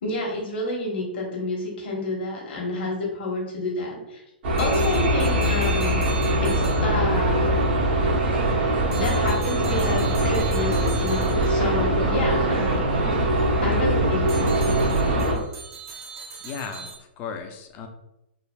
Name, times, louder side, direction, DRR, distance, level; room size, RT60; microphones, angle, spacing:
voice 1, 0.0-4.2 4.6-6.1 6.4-7.6 8.9-12.8 13.6-14.5, left 2 dB, 65° left, -1 dB, 1.0 m, -29 dB
sound 1, 4.4-15.4, right 1 dB, 65° right, 0.9 m, -22 dB
sound 2, 4.6-7.4 8.9-11.8 14.3-17.0, right 5 dB, 35° right, 0.7 m, -40 dB
voice 2, 12.0-12.4 16.4-17.9, left 6 dB, 30° left, 6 dB, 0.4 m, -36 dB
3.3 x 2.2 x 2.2 m, 0.88 s
hypercardioid pair, 135°, 6 cm